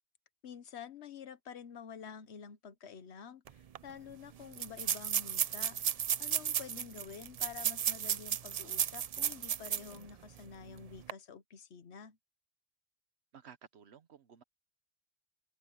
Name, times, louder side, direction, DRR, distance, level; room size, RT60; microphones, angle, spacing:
voice 1, 0.4-5.8 6.2-12.2, left 7 dB, 85° left, 1.2 m, -49 dB
sound 1, 3.5-3.6 3.7-3.8 4.5-10.0 10.4-10.5 10.9-11.1, right 9 dB, 50° right, 0.5 m, -34 dB
voice 2, 13.3-14.4, right 7 dB, 80° right, 1.2 m, -55 dB
open air
omnidirectional pair, 1.1 m